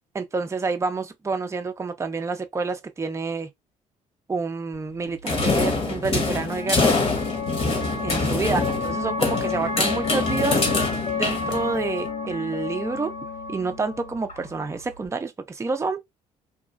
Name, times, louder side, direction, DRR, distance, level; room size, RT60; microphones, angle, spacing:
voice 1, 0.1-3.5 4.3-6.9 8.0-10.6 11.2-13.1 13.5-16.0, right 4 dB, 20° right, 0.5 m, -28 dB
sound 1, 4.7-15.1, left 4 dB, 65° left, 1.6 m, -31 dB
sound 2, 5.3-12.0, left 3 dB, 40° left, 1.1 m, -25 dB
3.0 x 2.3 x 2.4 m
cardioid pair, 80°, 15 cm